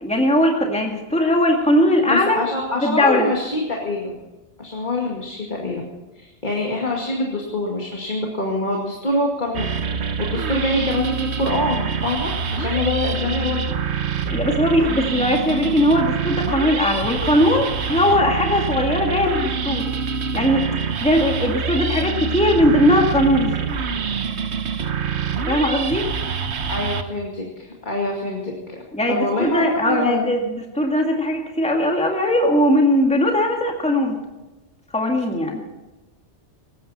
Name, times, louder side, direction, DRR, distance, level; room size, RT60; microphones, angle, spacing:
voice 1, 0.0-2.4 2.8-3.3 14.3-19.9 20.3-23.6 25.5-26.1 28.9-34.2 34.9-35.7, left 1 dB, 5° left, 1 dB, 2.1 m, -19 dB
voice 2, 2.1-4.2 4.6-5.8 6.1-13.6 26.7-28.8 29.1-30.3, left 2 dB, 40° left, -1 dB, 2.4 m, -25 dB
sound 1, 9.5-27.0, right 6 dB, 70° right, 1.3 m, -25 dB
19.0 x 15.0 x 4.3 m, 1.1 s
omnidirectional pair, 1.2 m